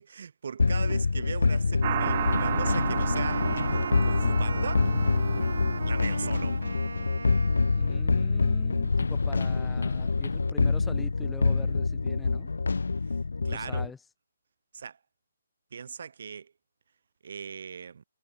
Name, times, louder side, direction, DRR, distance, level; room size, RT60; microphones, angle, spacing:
voice 1, 0.0-4.9 5.8-6.6 13.1-13.2 13.4-13.9 14.7-15.0 15.7-16.5 17.2-18.0, right 6 dB, 55° right, 1.7 m, -39 dB
sound 1, 0.6-13.9, left 4 dB, 90° left, 2.5 m, -26 dB
sound 2, 1.8-7.1, right 13 dB, 30° right, 1.8 m, -34 dB
Wind instrument woodwind instrument, 2.0-8.2, right 4 dB, 90° right, 6.6 m, -39 dB
voice 2, 7.7-12.5 13.4-14.0, left 5 dB, 5° left, 3.5 m, -44 dB
hypercardioid pair, 165°, 0 cm